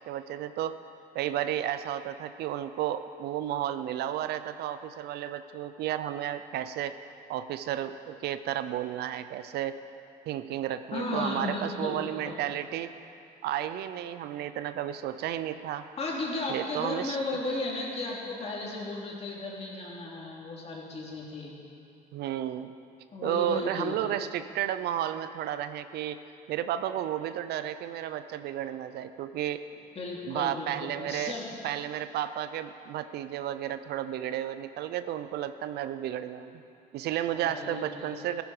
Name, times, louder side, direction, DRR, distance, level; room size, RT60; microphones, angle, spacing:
voice 1, 0.1-0.8 1.1-6.9 7.3-9.8 10.3-12.9 13.4-15.9 16.5-17.2 22.1-22.7 23.2-26.2 26.5-29.6 30.2-31.3 31.6-36.5 36.9-38.4, right 11 dB, 75° right, 11 dB, 0.6 m, -32 dB
voice 2, 10.9-12.4 16.0-21.5 23.1-23.9 29.9-31.5 37.3-38.1, left 2 dB, 35° left, -3 dB, 3.0 m, -35 dB
15.0 x 11.5 x 4.9 m, 2.6 s
cardioid pair, 110°, 17 cm